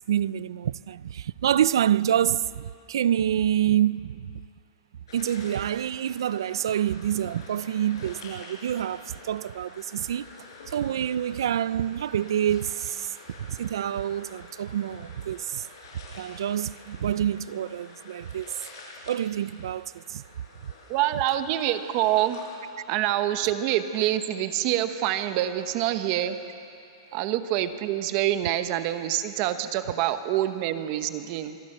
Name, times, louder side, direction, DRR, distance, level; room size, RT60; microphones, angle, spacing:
voice 1, 0.1-4.3 5.1-10.3 10.7-15.7 16.1-18.5 19.1-20.2 23.1-23.2, right 10 dB, 70° right, 0.5 m, -27 dB
sound 1, 5.1-22.6, left 3 dB, 70° left, 7.1 m, -48 dB
voice 2, 20.9-22.4 22.9-26.4 27.1-31.6, right 12 dB, 30° right, 1.0 m, -26 dB
25.5 x 23.0 x 6.7 m
supercardioid pair, 175°, 2 cm